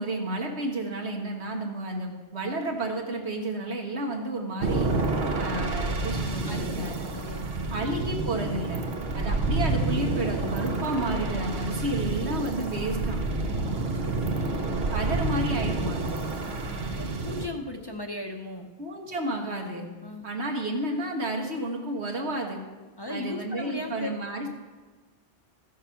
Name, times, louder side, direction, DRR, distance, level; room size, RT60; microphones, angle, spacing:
voice 1, 0.0-4.9 5.3-7.1 7.7-8.9 9.1-13.2 14.9-16.2 18.8-19.9 20.2-22.6 23.1-24.5, right 1 dB, 85° right, 1 dB, 1.8 m, -31 dB
sound 1, 4.6-17.5, right 3 dB, 70° right, 1.1 m, -29 dB
voice 2, 6.5-7.7 13.4-15.1 16.4-18.7 20.0-20.3 23.0-24.1, left 2 dB, 25° left, 4 dB, 0.7 m, -38 dB
14.0 x 6.5 x 5.7 m, 1.3 s
omnidirectional pair, 1.1 m